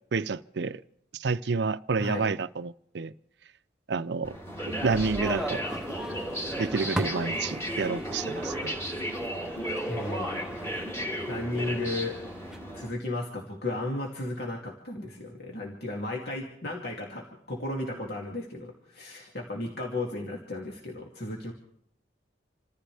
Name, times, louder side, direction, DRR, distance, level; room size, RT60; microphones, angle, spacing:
voice 1, 0.1-0.8 1.1-3.1 3.9-4.4 4.6-5.6 6.6-8.7, right 4 dB, 65° right, 0.5 m, -29 dB
sound 1, 4.2-12.9, equal, 15° left, 2.9 m, -34 dB
sound 2, 4.8-12.6, right 1 dB, 5° right, 0.7 m, -38 dB
voice 2, 9.9-10.8 11.3-12.2 12.7-21.5, left 2 dB, 55° left, 2.6 m, -34 dB
28.5 x 14.5 x 3.4 m
head